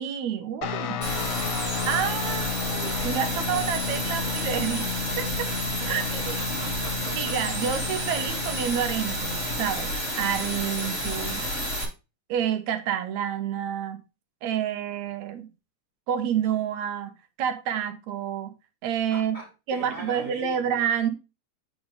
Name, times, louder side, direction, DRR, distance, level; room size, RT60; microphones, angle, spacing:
voice 1, 0.0-0.9 1.9-5.5 5.9-6.4 7.2-11.4 12.3-14.0 14.4-15.5 16.1-17.1 17.4-18.5 18.8-19.4 19.7-21.1, right 9 dB, 75° right, 2.3 m, -29 dB
Guitar, 0.6-9.7, left 6 dB, 70° left, 2.0 m, -34 dB
voice 2, 0.6-2.3 5.8-7.4 19.1-20.8, right 1 dB, 15° right, 2.2 m, -43 dB
sound 1, 1.0-11.8, equal, 25° left, 2.5 m, -30 dB
8.6 x 5.3 x 3.3 m
omnidirectional pair, 3.3 m